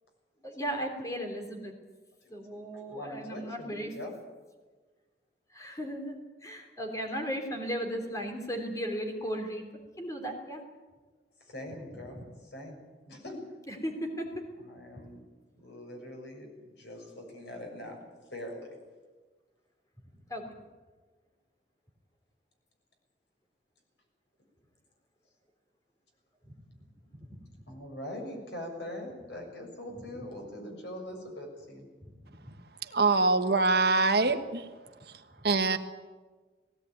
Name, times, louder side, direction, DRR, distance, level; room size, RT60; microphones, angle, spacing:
voice 1, 0.4-1.7 2.3-3.9 5.5-9.7 10.0-10.6 12.1-12.2 13.7-14.4 20.3-20.6 27.1-27.4 32.0-32.1 32.5-32.6, equal, 20° left, 3 dB, 3.3 m, -36 dB
voice 2, 2.9-4.1 11.4-12.8 13.1-13.4 14.6-15.2 15.6-18.0 18.3-18.8 27.7-31.9, left 1 dB, 80° left, 1 dB, 6.8 m, -42 dB
voice 3, 32.8-34.7 35.0-35.8, right 3 dB, 65° right, 7 dB, 1.5 m, -25 dB
19.0 x 17.0 x 9.4 m, 1.3 s
head